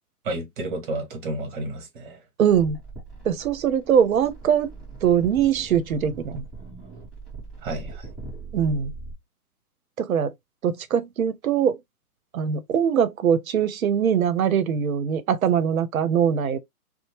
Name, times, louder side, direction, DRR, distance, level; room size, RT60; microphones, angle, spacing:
voice 1, 0.2-2.2 7.6-8.1, right 2 dB, 35° right, 0.9 m, -31 dB
voice 2, 2.4-2.8 3.2-4.7 5.0-6.4 8.5-8.9 10.0-10.3 10.6-11.8 12.3-16.6, right 8 dB, 65° right, 0.6 m, -22 dB
sound 1, 2.5-9.1, right 3 dB, ahead, 0.7 m, -40 dB
2.7 x 2.0 x 3.0 m
figure-of-eight pair, 130°, 46 cm